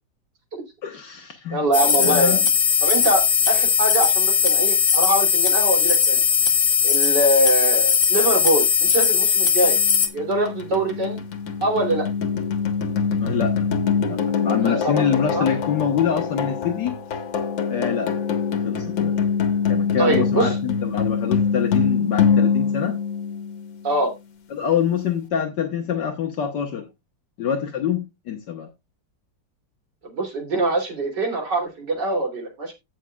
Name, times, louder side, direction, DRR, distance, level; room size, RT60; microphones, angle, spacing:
voice 1, 0.8-1.7 1.9-2.5 13.2-13.7 14.0-16.9 17.7-18.1 18.6-19.2 19.7-23.0 24.5-26.9 27.4-28.7, left 8 dB, 65° left, 3 dB, 1.8 m, -25 dB
voice 2, 1.5-2.4 2.8-6.2 6.8-9.8 10.1-11.2 11.6-12.1 14.6-15.1 15.3-15.5 20.0-20.6 23.8-24.1 30.0-32.7, right 2 dB, 65° right, 2 dB, 3.7 m, -23 dB
sound 1, 1.7-10.1, left 7 dB, 50° left, 1.7 m, -19 dB
sound 2, 9.6-23.8, left 6 dB, 85° left, 2.1 m, -24 dB
17.0 x 6.2 x 2.3 m, 0.23 s
omnidirectional pair, 2.0 m